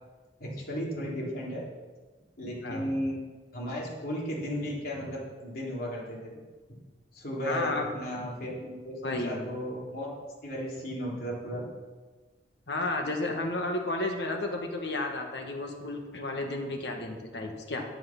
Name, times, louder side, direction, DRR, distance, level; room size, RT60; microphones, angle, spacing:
voice 1, 0.4-1.6 2.4-3.2 3.5-6.4 7.1-10.1 10.4-11.7, equal, 55° left, -5 dB, 3.3 m, -35 dB
voice 2, 7.5-7.9 9.0-9.5 12.7-17.8, left 2 dB, 75° left, 2 dB, 1.5 m, -32 dB
10.5 x 7.6 x 5.9 m, 1.3 s
head